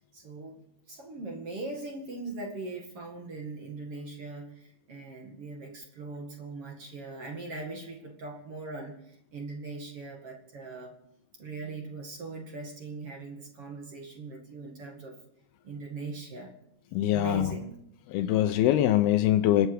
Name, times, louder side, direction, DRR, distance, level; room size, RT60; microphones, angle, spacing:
voice 1, 0.1-0.6 0.9-11.0 11.4-15.2 15.6-16.5 17.1-17.7, right 3 dB, 45° right, 1 dB, 2.3 m, -40 dB
voice 2, 16.9-17.5 18.1-19.7, left 12 dB, 80° left, 10 dB, 2.4 m, -23 dB
26.5 x 9.4 x 4.9 m, 0.74 s
omnidirectional pair, 5.0 m